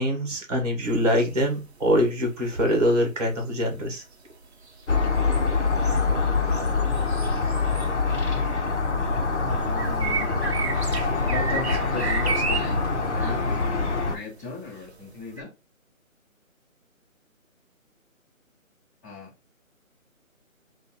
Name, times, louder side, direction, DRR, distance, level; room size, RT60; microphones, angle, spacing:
voice 1, 0.0-4.0, equal, 30° right, 1.4 m, -24 dB
sound 1, 0.8-8.4 8.7-15.4, right 5 dB, 50° right, 0.8 m, -33 dB
sound 2, 4.9-14.2, left 4 dB, 55° left, 1.1 m, -24 dB
voice 2, 9.4-10.9 11.3-15.5 19.0-19.3, left 3 dB, 15° left, 1.6 m, -37 dB
6.5 x 2.6 x 3.0 m
hypercardioid pair, 175°, 42 cm